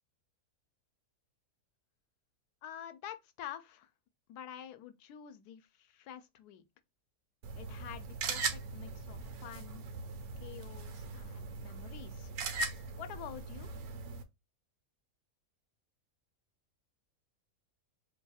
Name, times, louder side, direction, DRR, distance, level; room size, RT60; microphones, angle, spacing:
voice 1, 2.6-3.9 4.3-6.6 7.6-9.8 10.4-12.3 12.9-13.7, left 10 dB, 90° left, 1.1 m, -48 dB
sound 1, 7.4-14.2, right 3 dB, 75° right, 1.1 m, -40 dB
2.9 x 2.3 x 4.1 m
omnidirectional pair, 1.6 m